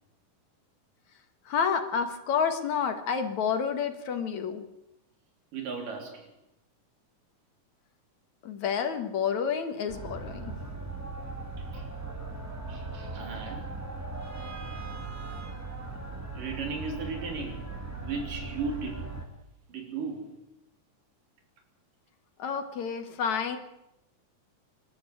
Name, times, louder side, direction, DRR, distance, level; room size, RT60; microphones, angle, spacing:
voice 1, 1.5-4.6 8.4-10.5 22.4-23.6, left 6 dB, 65° left, 7 dB, 2.8 m, -29 dB
voice 2, 5.5-6.3 11.6-11.9 12.7-13.7 16.4-19.1 19.7-20.4, right 4 dB, 85° right, 3 dB, 5.2 m, -36 dB
sound 1, 9.9-19.3, right 3 dB, 5° right, 2.5 m, -38 dB
26.0 x 13.5 x 8.5 m, 0.87 s
omnidirectional pair, 3.7 m